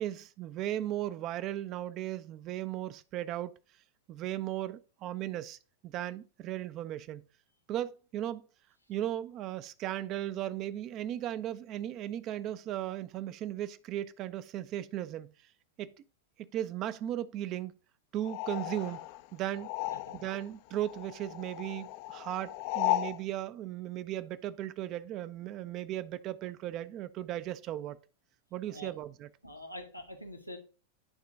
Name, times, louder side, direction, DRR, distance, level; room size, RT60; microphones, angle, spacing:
voice 1, 0.0-3.5 4.1-7.2 7.7-8.5 8.9-15.3 15.8-15.9 16.4-17.7 18.1-19.0 19.3-19.7 20.1-28.0 28.5-29.3, right 12 dB, 35° right, 0.4 m, -36 dB
sound 1, 18.2-20.5 20.7-23.2, left 15 dB, 45° left, 0.3 m, -35 dB
voice 2, 29.4-30.6, left 1 dB, 90° left, 0.9 m, -45 dB
8.9 x 3.7 x 3.5 m
figure-of-eight pair, 90°, 0 cm